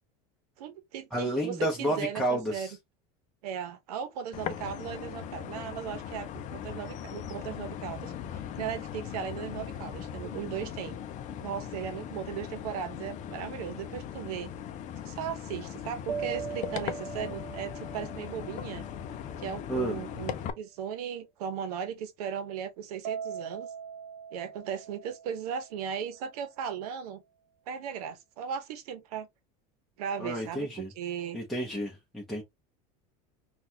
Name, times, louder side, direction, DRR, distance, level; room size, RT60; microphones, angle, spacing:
voice 1, 0.6-2.7 3.4-10.9 11.4-14.5 15.0-18.8 19.4-23.7 24.3-27.2 27.7-29.3 30.0-31.4, right 8 dB, 90° right, 0.9 m, -37 dB
voice 2, 1.1-2.7 19.7-20.0 30.2-30.9 31.3-32.4, right 1 dB, ahead, 0.9 m, -31 dB
sound 1, 4.3-20.5, left 9 dB, 40° left, 0.5 m, -39 dB
sound 2, 16.1-19.6 23.0-26.1, right 7 dB, 65° right, 1.1 m, -41 dB
4.0 x 2.4 x 2.7 m
supercardioid pair, 130°, 19 cm